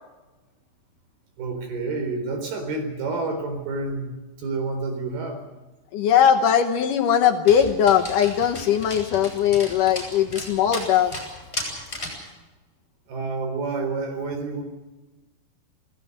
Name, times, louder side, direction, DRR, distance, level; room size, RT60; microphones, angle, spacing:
voice 1, 1.4-4.1 4.4-5.4 13.1-14.6, right 3 dB, 70° right, 5 dB, 5.9 m, -29 dB
voice 2, 5.9-11.1, left 9 dB, 70° left, 4 dB, 2.1 m, -20 dB
Dog, 7.5-12.3, left 1 dB, 15° left, 7.1 m, -35 dB
27.5 x 17.5 x 6.7 m, 1.1 s
omnidirectional pair, 4.7 m